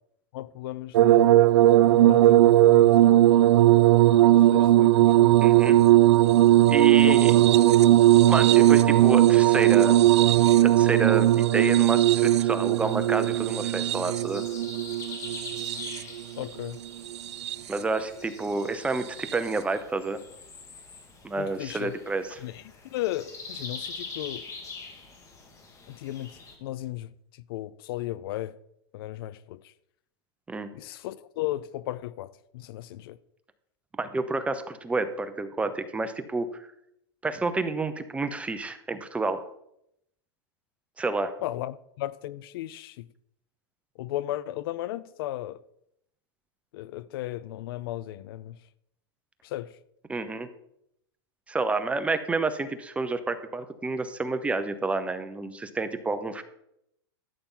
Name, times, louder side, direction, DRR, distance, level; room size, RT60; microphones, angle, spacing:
voice 1, 0.3-1.4 1.8-3.3 4.4-5.3 6.9-7.4 16.4-16.8 21.4-22.0 22.4-22.6 22.9-24.5 25.9-28.6 28.9-29.7 30.7-33.2 41.4-43.1 44.0-45.6 46.7-48.6 49.4-49.8, left 15 dB, 55° left, 0.5 m, -35 dB
sound 1, 0.9-16.2 17.1-17.8 19.2-19.3, right 14 dB, 80° right, 0.5 m, -18 dB
voice 2, 5.4-5.8 6.7-7.3 8.3-10.0 10.6-14.4 17.7-20.2 21.2-22.4 30.5-30.7 34.0-36.7 37.2-39.4 41.0-41.3 50.1-50.5 51.5-56.4, right 3 dB, 10° right, 0.8 m, -29 dB
sound 2, 12.7-26.6, left 4 dB, 20° left, 2.1 m, -44 dB
13.0 x 8.6 x 3.9 m
hypercardioid pair, 135°, 14 cm